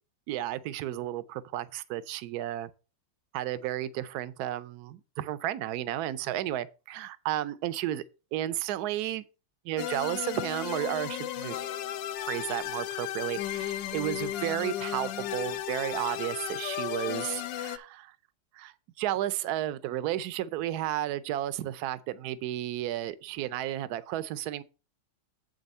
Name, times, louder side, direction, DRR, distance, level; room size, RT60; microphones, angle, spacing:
voice 1, 0.3-2.7 3.3-8.0 8.3-9.2 9.6-11.6 12.3-18.1 18.5-24.6, right 13 dB, 65° right, 1.0 m, -33 dB
sound 1, 9.8-17.8, left 12 dB, 70° left, 1.3 m, -34 dB
7.7 x 5.3 x 5.4 m
omnidirectional pair, 2.2 m